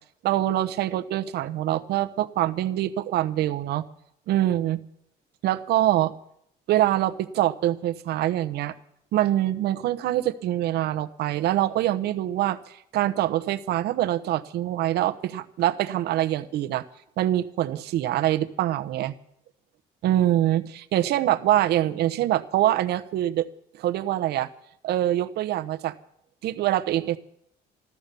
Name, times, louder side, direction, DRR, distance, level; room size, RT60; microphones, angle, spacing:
voice 1, 0.2-3.8 4.3-4.8 5.4-6.1 6.7-8.7 9.1-16.8 17.2-19.1 20.0-23.5 23.8-24.5 24.8-25.9 26.4-27.2, right 13 dB, 75° right, 12 dB, 1.0 m, -24 dB
14.0 x 13.0 x 6.8 m, 0.71 s
cardioid pair, 110°, 17 cm